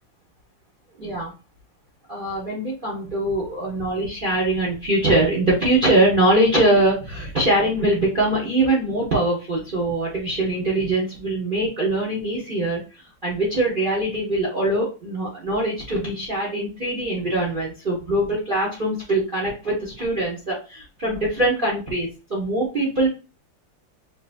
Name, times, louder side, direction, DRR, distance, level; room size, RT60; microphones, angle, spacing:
voice 1, 1.0-1.3 2.1-23.1, right 1 dB, 35° right, -3 dB, 0.9 m, -22 dB
5.7 x 2.8 x 2.5 m, 0.33 s
omnidirectional pair, 2.1 m